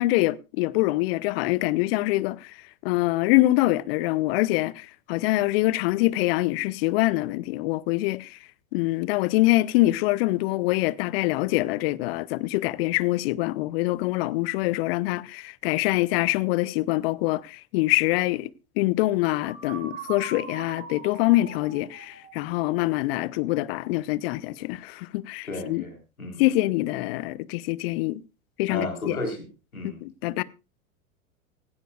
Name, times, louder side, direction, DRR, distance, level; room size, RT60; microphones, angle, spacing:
voice 1, 0.0-2.6 2.8-8.4 8.7-18.5 18.8-25.8 26.4-28.2 28.6-29.2 30.0-30.4, left 18 dB, 45° left, 0.6 m, -24 dB
sound 1, 19.5-23.3, right 6 dB, 30° right, 6.9 m, -42 dB
voice 2, 25.4-26.5 28.7-29.4 29.7-30.0, left 2 dB, 85° left, 3.8 m, -33 dB
17.0 x 15.5 x 2.3 m
figure-of-eight pair, 85°, 41 cm